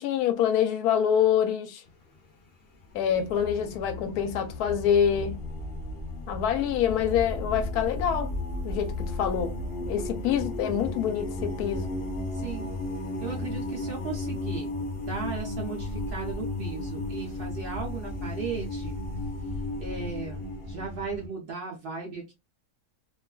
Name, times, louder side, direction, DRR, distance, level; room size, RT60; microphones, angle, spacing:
voice 1, 0.0-1.8 2.9-5.4 6.3-8.3 8.6-9.6 9.9-11.9, left 9 dB, 75° left, 1.0 m, -26 dB
sound 1, 1.9-2.2 2.8-21.3, left 2 dB, 55° left, 0.7 m, -34 dB
voice 2, 12.3-12.7 13.2-14.7 15.0-19.0 19.8-22.3, right 5 dB, 70° right, 0.5 m, -36 dB
2.5 x 2.3 x 2.2 m
omnidirectional pair, 1.7 m